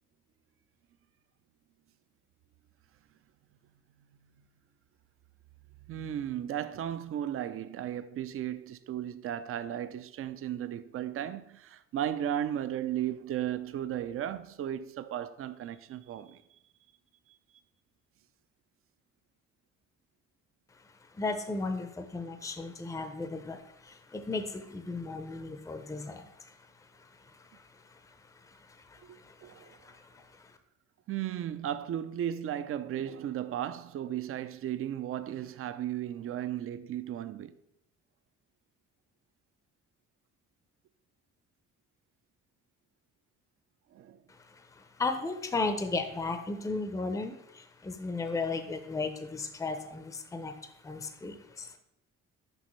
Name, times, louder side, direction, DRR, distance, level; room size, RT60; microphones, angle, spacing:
voice 1, 5.9-16.4 29.0-29.8 31.1-37.6 43.9-44.2, right 11 dB, 45° right, 0.4 m, -35 dB
voice 2, 20.7-30.6 44.3-51.8, left 3 dB, 10° left, 0.5 m, -36 dB
6.3 x 5.0 x 3.1 m
cardioid pair, 90°, 30 cm